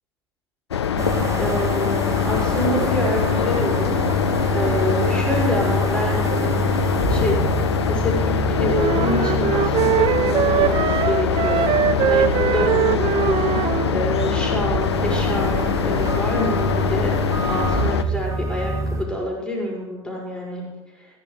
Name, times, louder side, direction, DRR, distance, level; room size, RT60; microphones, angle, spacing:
sound 1, 0.7-18.0, left 8 dB, 80° left, 0.8 m, -23 dB
voice 1, 1.0-2.0 2.2-3.9 4.5-6.6 7.1-7.3 7.9-17.2 17.5-20.6 21.0-21.1, left 1 dB, 5° left, -3 dB, 6.3 m, -27 dB
sound 2, 1.0-19.0, right 1 dB, 20° right, 2.7 m, -26 dB
sound 3, 8.7-13.9, right 11 dB, 40° right, 0.6 m, -22 dB
19.5 x 11.0 x 5.0 m, 1.1 s
figure-of-eight pair, 70°, 14 cm